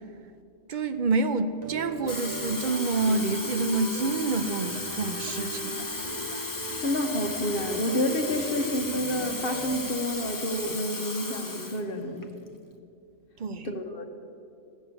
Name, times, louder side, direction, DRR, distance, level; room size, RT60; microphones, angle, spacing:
voice 1, 0.7-5.8 13.4-13.7, right 3 dB, 55° right, 10 dB, 0.5 m, -27 dB
sound 1, 1.6-10.5, right 1 dB, 35° right, 1.1 m, -39 dB
Water tap faucet / Fill (with liquid), 1.9-11.8 12.2-12.5, left 3 dB, 20° left, 0.7 m, -35 dB
voice 2, 6.8-12.4 13.6-14.1, left 1 dB, 45° left, 5 dB, 1.3 m, -29 dB
14.5 x 6.9 x 8.2 m, 2.5 s
omnidirectional pair, 1.4 m